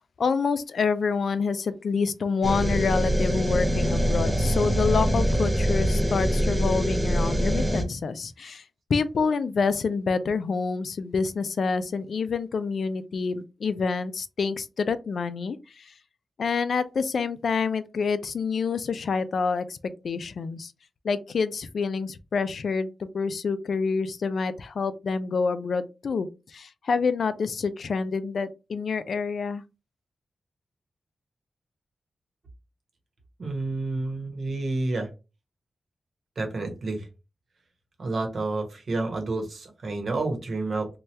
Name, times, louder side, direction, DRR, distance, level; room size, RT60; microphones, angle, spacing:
voice 1, 0.2-8.6 8.9-15.9 16.4-19.8 20.0-20.7 21.0-26.3 26.5-29.6, left 5 dB, 70° left, 0.3 m, -27 dB
sound 1, 2.4-7.8, equal, 10° right, 0.6 m, -24 dB
voice 2, 33.4-35.1 36.4-37.1 38.0-40.9, right 2 dB, 60° right, 1.0 m, -29 dB
2.8 x 2.3 x 3.2 m
wide cardioid pair, 130°, 0 cm